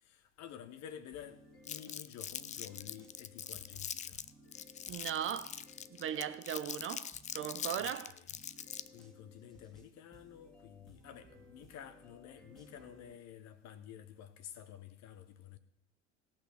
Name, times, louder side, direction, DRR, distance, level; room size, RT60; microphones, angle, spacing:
voice 1, 0.0-4.2 7.8-8.2 8.9-15.6, left 9 dB, 45° left, 1.4 m, -51 dB
sound 1, 1.1-6.5 7.1-13.1, equal, ahead, 2.3 m, -60 dB
Crumpling crinkling, 1.7-9.0, left 9 dB, 20° left, 0.4 m, -43 dB
voice 2, 4.9-5.6 5.9-8.2, right 9 dB, 35° right, 0.8 m, -38 dB
17.0 x 6.2 x 6.4 m
hypercardioid pair, 75°, 37 cm